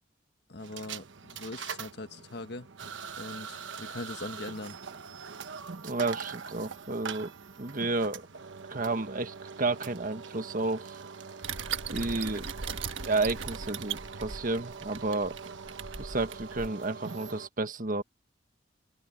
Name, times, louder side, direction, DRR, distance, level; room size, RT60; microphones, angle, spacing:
voice 1, 0.5-2.7 3.2-4.8, left 2 dB, 60° left, 1.5 m, -41 dB
sound 1, 0.6-17.5, right 5 dB, 75° right, 1.1 m, -43 dB
voice 2, 5.8-7.3 7.6-8.3 8.7-11.0 11.9-12.5 13.0-15.4 16.0-18.0, right 3 dB, 45° right, 1.4 m, -31 dB
sound 2, 11.4-16.7, right 6 dB, 90° right, 1.4 m, -38 dB
open air
head